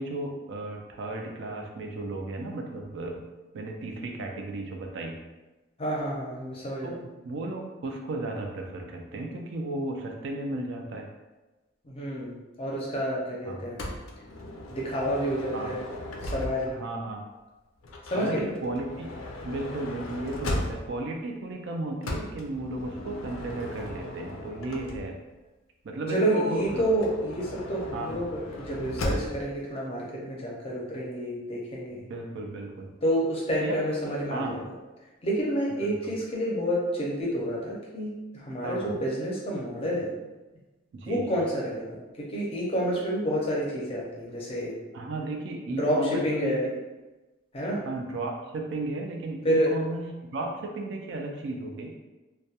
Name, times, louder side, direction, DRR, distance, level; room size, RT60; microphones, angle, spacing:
voice 1, 0.0-3.2 3.5-5.2 6.8-11.1 13.4-13.6 15.5-15.7 16.6-17.2 18.2-19.1 19.4-25.2 25.8-26.9 27.9-28.1 31.9-32.9 33.6-33.8 34.3-34.6 35.7-36.1 38.6-38.9 40.9-41.4 44.9-46.7 47.8-52.0, right 2 dB, 60° right, 2 dB, 0.3 m, -34 dB
voice 2, 5.8-7.0 11.8-13.9 14.7-15.8 16.2-16.8 18.1-18.5 26.1-32.0 33.0-34.6 35.2-40.1 41.1-44.7 45.8-46.7 47.5-47.8 49.4-49.7, equal, 30° left, -4 dB, 0.5 m, -29 dB
Motor vehicle (road) / Sliding door, 13.8-16.9 17.8-21.1 22.0-25.3 26.6-29.5, left 1 dB, 90° left, 0.4 m, -37 dB
2.2 x 2.1 x 2.8 m, 1.1 s
head